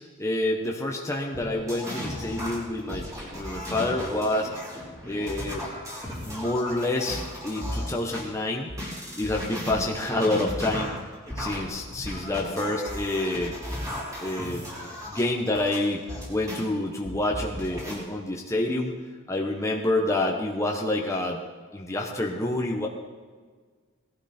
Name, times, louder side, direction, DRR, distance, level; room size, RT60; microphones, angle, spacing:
voice 1, 0.2-4.5 5.0-5.6 6.2-8.7 9.2-10.9 11.4-13.6 14.2-14.7 15.1-19.0 19.3-21.4 21.7-22.9, left 1 dB, 15° left, 0 dB, 1.1 m, -28 dB
sound 1, 1.3-8.2 8.7-16.6 17.0-17.9, equal, 15° right, 3.8 m, -35 dB
18.0 x 12.0 x 4.4 m, 1.5 s
head